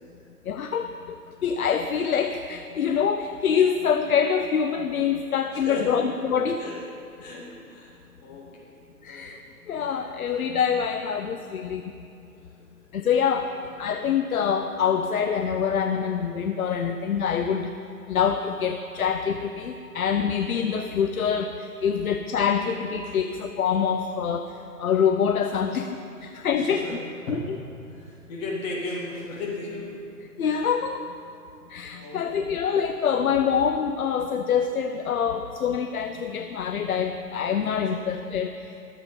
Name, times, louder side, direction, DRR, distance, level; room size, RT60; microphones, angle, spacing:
voice 1, 0.5-0.9 1.4-6.7 9.0-9.4 9.7-11.9 12.9-13.5 13.8-17.7 18.1-24.5 24.8-25.9 26.2-26.9 27.3-27.6 30.4-31.0 31.7-38.7, left 7 dB, 60° left, 7 dB, 0.6 m, -25 dB
voice 2, 5.5-6.0 6.6-6.9 7.2-7.9 8.2-8.7 9.1-9.3 13.1-13.7 23.0-23.2 26.6-27.0 27.3-27.5 27.9-30.1 30.4-30.7 31.8-32.6 35.3-35.4 37.8-37.9, left 2 dB, 25° left, -3 dB, 2.0 m, -36 dB
12.0 x 7.6 x 5.2 m, 2.6 s
figure-of-eight pair, 140°, 48 cm